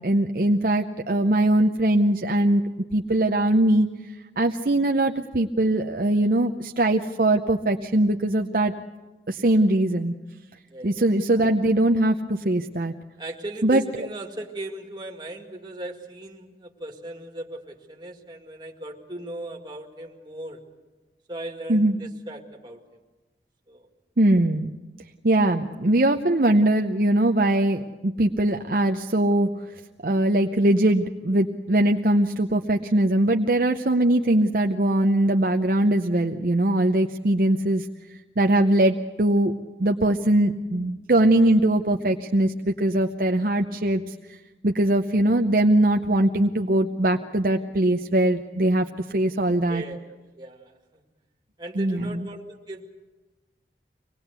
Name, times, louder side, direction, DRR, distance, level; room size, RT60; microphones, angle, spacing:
voice 1, 0.0-3.9 4.4-8.7 9.3-10.1 10.8-12.9 13.6-13.8 21.7-22.0 24.2-24.7 25.2-29.5 30.0-37.9 38.4-39.5 39.8-44.4 44.6-48.9 49.1-49.8 51.8-52.2, right 1 dB, 50° right, 4 dB, 0.7 m, -21 dB
voice 2, 13.2-20.6 21.3-23.0 23.7-23.9 49.7-50.0 50.4-51.0 51.6-52.9, right 1 dB, 25° right, 1 dB, 2.0 m, -38 dB
25.0 x 19.0 x 8.1 m, 1.2 s
head